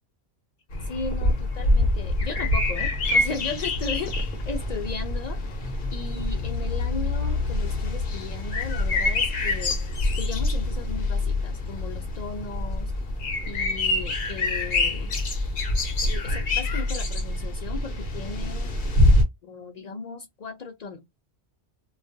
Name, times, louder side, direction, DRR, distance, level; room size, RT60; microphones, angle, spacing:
sound 1, 0.7-19.2, left 2 dB, 50° left, 0.8 m, -25 dB
voice 1, 0.8-5.4 5.9-9.8 10.2-12.9 13.5-15.2 15.8-18.7 19.4-21.0, left 4 dB, 75° left, 0.3 m, -36 dB
2.3 x 2.3 x 2.5 m
omnidirectional pair, 1.2 m